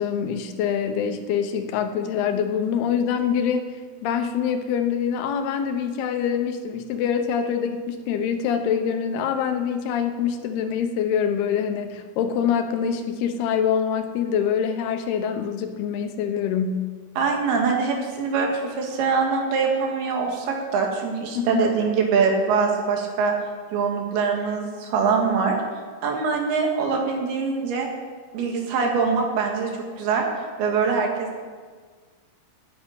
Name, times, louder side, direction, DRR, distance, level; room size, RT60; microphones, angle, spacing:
voice 1, 0.0-16.9 21.4-21.7, left 7 dB, 85° left, 7 dB, 2.9 m, -25 dB
voice 2, 17.2-23.3 23.7-25.6 26.0-27.9 28.3-29.7 30.0-30.3 30.6-31.4, right 5 dB, 85° right, 1 dB, 3.7 m, -23 dB
9.8 x 9.3 x 8.6 m, 1.6 s
omnidirectional pair, 4.4 m